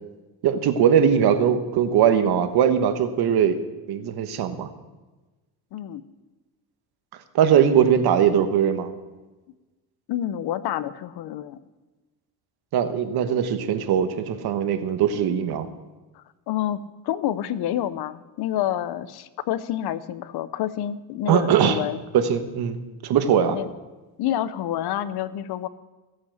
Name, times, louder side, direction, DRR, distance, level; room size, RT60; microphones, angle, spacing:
voice 1, 0.4-3.6 3.9-4.7 7.3-8.9 12.7-15.7 21.3-21.8 22.1-22.8 23.0-23.6, right 8 dB, 65° right, 9 dB, 1.4 m, -20 dB
voice 2, 5.7-6.0 10.1-11.6 16.2-22.0 23.5-23.7 24.2-25.7, left 11 dB, 70° left, 15 dB, 0.9 m, -28 dB
16.0 x 8.4 x 6.5 m, 1.2 s
cardioid pair, 115°, 40 cm